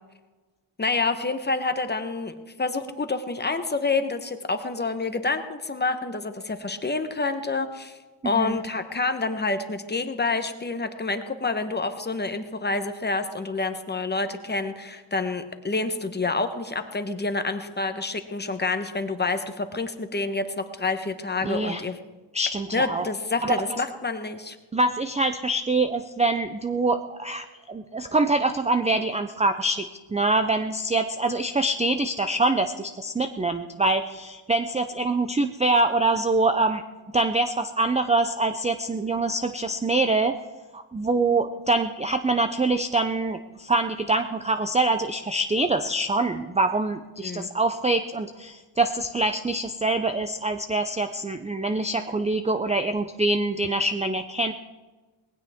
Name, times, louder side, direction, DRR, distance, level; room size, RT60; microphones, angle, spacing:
voice 1, 0.8-8.0 8.2-22.0 22.7-24.6 47.2-47.5, left 3 dB, 20° left, 8 dB, 1.0 m, -28 dB
voice 2, 8.2-8.6 21.4-21.8 22.3-23.1 23.4-23.6 24.7-29.8 30.1-36.8 37.1-40.4 40.7-54.5, right 2 dB, 15° right, 8 dB, 0.4 m, -24 dB
19.5 x 16.0 x 3.5 m, 1.2 s
wide cardioid pair, 145°, 48 cm